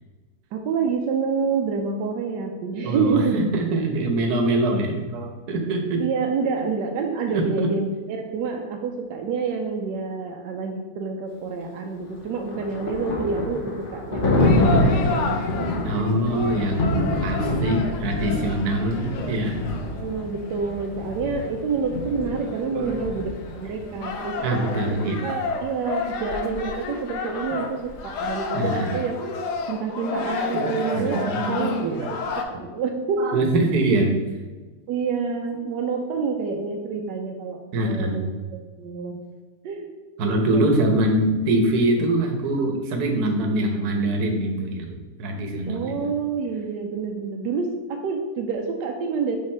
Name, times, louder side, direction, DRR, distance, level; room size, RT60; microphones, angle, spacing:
voice 1, 0.5-3.5 6.0-15.7 18.9-19.3 19.9-24.6 24.9-29.1 29.7-31.8 32.1-33.4 34.9-38.3 38.8-39.2 39.6-39.9 40.2-40.6 45.7-49.4, right 5 dB, 85° right, 3 dB, 1.2 m, -28 dB
voice 2, 2.8-6.0 7.3-7.4 15.8-19.7 22.7-23.0 24.4-25.3 28.5-29.0 30.0-30.1 30.4-32.1 33.2-34.1 37.7-38.3 40.2-46.1, right 1 dB, 65° right, 3 dB, 1.4 m, -24 dB
Thunder, 12.0-23.8, left 1 dB, 40° left, 1.0 m, -26 dB
sound 1, 14.4-32.4, left 4 dB, 75° left, 1.3 m, -32 dB
6.6 x 3.5 x 4.3 m, 1.3 s
omnidirectional pair, 1.8 m